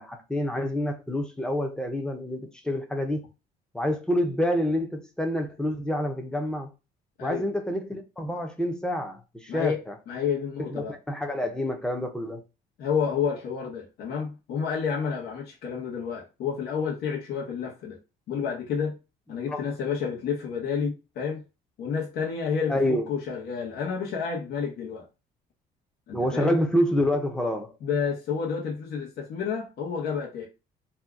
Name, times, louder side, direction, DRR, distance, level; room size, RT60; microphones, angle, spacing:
voice 1, 0.0-3.2 3.7-6.7 7.2-9.9 10.7-12.4 19.5-19.7 22.7-23.1 26.1-27.7, equal, 5° left, 0.7 m, -27 dB
voice 2, 9.5-9.8 10.1-11.0 12.8-18.0 18.3-19.0 19.3-21.4 21.8-25.1 26.1-26.6 27.8-30.5, left 6 dB, 70° left, 1.0 m, -30 dB
2.7 x 2.3 x 3.5 m
cardioid pair, 110°, 17 cm